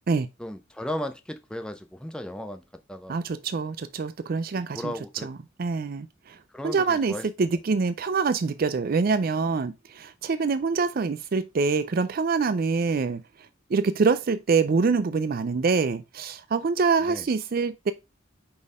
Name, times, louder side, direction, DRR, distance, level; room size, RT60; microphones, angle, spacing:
voice 1, 0.4-2.6 2.9-3.2 4.7-5.3 6.5-7.3 17.0-17.2, left 1 dB, 5° left, 0.5 m, -35 dB
voice 2, 3.1-4.9 5.2-6.4 6.6-13.2 13.7-17.9, right 4 dB, 45° right, 0.4 m, -25 dB
5.3 x 4.3 x 4.8 m
head